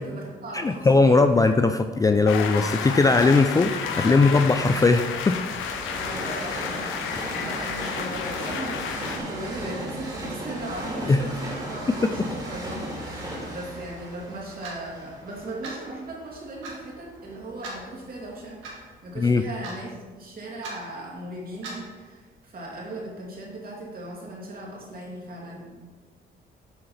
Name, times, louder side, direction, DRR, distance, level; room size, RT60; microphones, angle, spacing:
voice 1, 0.0-1.5 4.0-4.6 5.9-25.8, right 1 dB, 45° right, -3 dB, 2.6 m, -38 dB
voice 2, 0.5-5.4 11.1-11.2 19.2-19.4, left 3 dB, 20° left, 8 dB, 0.3 m, -19 dB
sound 1, 2.2-9.2, left 7 dB, 85° left, 0.7 m, -31 dB
Train, 3.8-18.3 18.9-19.0, right 1 dB, 20° right, 2.5 m, -37 dB
Clock, 14.6-14.8 15.6-15.8 16.6-16.8 17.6-17.8 18.6-18.8 19.6-19.9 20.6-20.8 21.6-21.8, right 3 dB, 85° right, 2.0 m, -37 dB
8.5 x 3.8 x 5.8 m, 1.4 s
cardioid pair, 90°, 20 cm